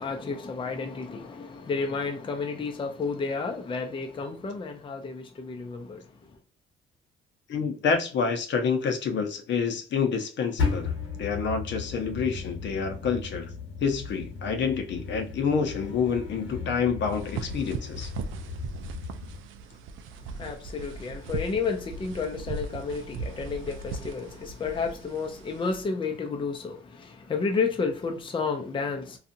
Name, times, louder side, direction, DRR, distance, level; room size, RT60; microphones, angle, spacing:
voice 1, 0.0-6.0 20.4-29.2, left 4 dB, 25° left, 0.5 m, -31 dB
voice 2, 7.5-13.5 13.8-18.1, left 5 dB, 65° left, 0.7 m, -28 dB
sound 1, 10.6-19.4, left 5 dB, 85° left, 1.0 m, -35 dB
sound 2, 17.1-25.8, right 4 dB, 80° right, 0.4 m, -38 dB
2.6 x 2.4 x 2.5 m
cardioid pair, 90°, 20 cm